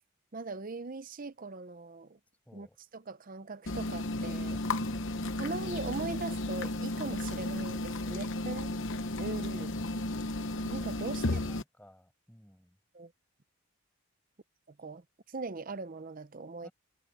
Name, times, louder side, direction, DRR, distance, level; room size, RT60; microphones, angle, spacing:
voice 1, 0.3-2.2 2.5-2.7 2.9-4.6 5.4-8.7 9.2-9.8 10.6-11.2 12.9-13.1 14.7-16.7, right 3 dB, 40° right, 0.7 m, -40 dB
voice 2, 2.5-2.8 11.2-12.8 16.6-16.7, equal, 5° left, 5.6 m, -56 dB
sound 1, 3.7-11.6, left 2 dB, 55° left, 1.0 m, -34 dB
head